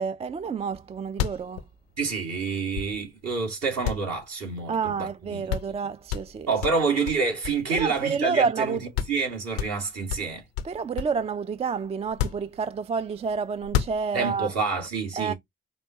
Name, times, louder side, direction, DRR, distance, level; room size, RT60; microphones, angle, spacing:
voice 1, 0.0-1.6 4.7-6.5 7.7-8.9 10.6-14.5 15.2-15.3, right 5 dB, 20° right, 0.3 m, -29 dB
sound 1, 0.8-0.9 1.1-3.3 3.8-4.9 5.2-5.3 5.5-5.8 6.1-8.3 8.6-8.7 8.9-9.2 9.6-11.3 12.0-13.0 13.6-14.4, left 10 dB, 85° left, 0.5 m, -31 dB
voice 2, 2.0-5.4 6.5-8.8 9.1-10.4 14.1-15.3, right 4 dB, 55° right, 2.2 m, -28 dB
5.2 x 2.3 x 2.8 m
hypercardioid pair, 50°, 30 cm